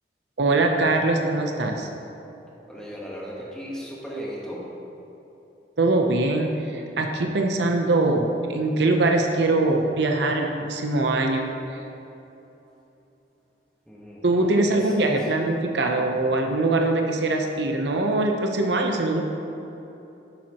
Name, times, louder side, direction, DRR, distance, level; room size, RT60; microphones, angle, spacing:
voice 1, 0.4-1.9 5.8-11.8 14.2-19.2, right 2 dB, 85° right, 3 dB, 0.7 m, -22 dB
voice 2, 2.7-4.6 13.9-15.2, equal, 5° left, -5 dB, 1.2 m, -37 dB
10.5 x 7.4 x 3.0 m, 3.0 s
head